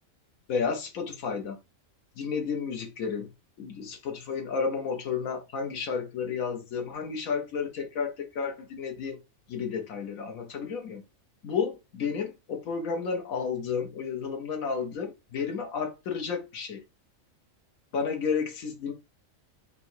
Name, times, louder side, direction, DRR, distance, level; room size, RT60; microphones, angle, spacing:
voice 1, 0.5-1.6 2.2-3.3 3.6-9.2 9.5-11.0 11.4-16.8 17.9-18.9, left 6 dB, 80° left, 1.3 m, -32 dB
3.8 x 2.8 x 4.3 m
omnidirectional pair, 1.4 m